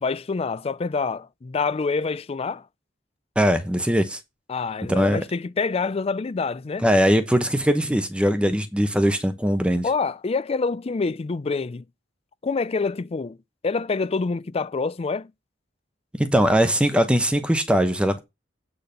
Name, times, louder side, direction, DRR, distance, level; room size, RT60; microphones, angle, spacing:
voice 1, 0.0-2.7 4.5-6.9 9.8-11.9 12.4-13.4 13.6-15.3, left 4 dB, 30° left, 0.4 m, -26 dB
voice 2, 3.4-4.2 4.9-5.2 6.8-9.9 16.2-18.2, equal, 5° right, 1.0 m, -20 dB
8.6 x 3.9 x 6.6 m
head